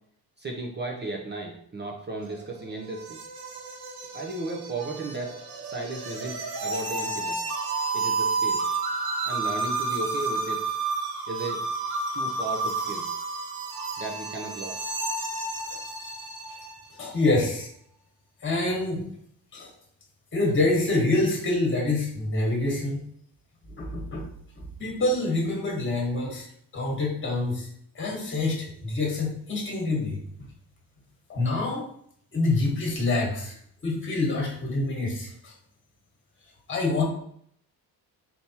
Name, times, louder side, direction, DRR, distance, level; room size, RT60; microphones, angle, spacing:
voice 1, 0.4-3.2 4.1-5.3 5.6-7.4 7.9-8.7 9.3-10.8 11.3-11.6 12.1-13.1 14.0-14.8, right 2 dB, 25° right, 1 dB, 0.5 m, -35 dB
sound 1, 2.2-16.8, right 3 dB, 65° right, 1.0 m, -31 dB
voice 2, 17.0-17.7 18.4-19.0 19.5-19.7 20.3-23.0 23.8-24.3 24.6-26.5 26.7-27.7 27.9-30.2 31.3-31.9 32.3-33.6 33.8-35.5 36.7-37.0, left 2 dB, 30° left, -1 dB, 1.3 m, -26 dB
4.3 x 3.4 x 2.8 m, 0.66 s
cardioid pair, 145°, 40 cm